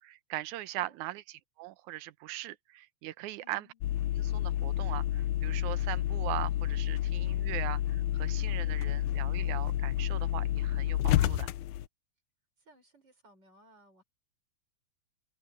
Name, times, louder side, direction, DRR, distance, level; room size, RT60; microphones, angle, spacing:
voice 1, 0.0-3.7 4.2-11.5, right 16 dB, 80° right, 2.2 m, -40 dB
voice 2, 0.7-1.1 3.4-3.8 12.6-14.0, equal, 35° right, 6.8 m, -60 dB
sound 1, 3.8-11.9, left 13 dB, 80° left, 2.1 m, -30 dB
omnidirectional pair, 3.4 m